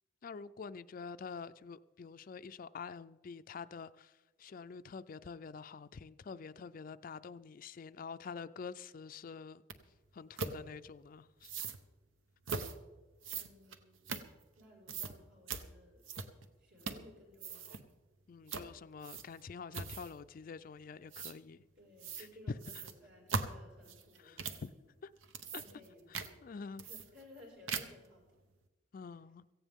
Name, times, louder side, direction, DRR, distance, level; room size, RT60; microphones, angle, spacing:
voice 1, 0.2-4.1 4.4-9.6 10.1-11.5 18.3-21.6 22.2-22.3 24.2-24.4 25.0-25.1 25.5-25.6 26.1-26.8 28.9-29.4, left 5 dB, 45° left, 0.4 m, -47 dB
sound 1, 9.7-9.8 10.4-10.6 11.4-11.8 12.5-12.8 13.2-14.6 14.9-15.1 15.5-15.7 16.0-16.5 16.8-17.1 17.4-17.8 18.5-18.7 19.0-19.4 19.7-20.2 21.1-21.4 22.0-22.3 22.6-24.7 25.2-25.9 26.1-26.3 26.8-27.4 27.7-28.1, right 5 dB, 90° right, 1.0 m, -40 dB
voice 2, 13.3-14.1 14.6-16.0 16.6-17.8 21.8-24.9 25.6-28.3 29.0-29.2, left 1 dB, 70° right, 5.5 m, -58 dB
17.0 x 15.5 x 3.6 m
head